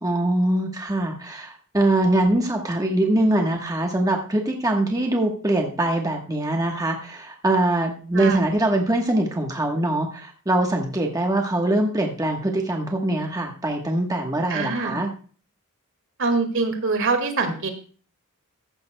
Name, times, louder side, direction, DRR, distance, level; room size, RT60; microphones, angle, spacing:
voice 1, 0.0-15.1, right 1 dB, 15° right, 1 dB, 1.2 m, -23 dB
voice 2, 14.5-15.0 16.2-17.7, right 3 dB, 60° right, 7 dB, 1.9 m, -24 dB
15.0 x 11.0 x 2.2 m, 0.40 s
head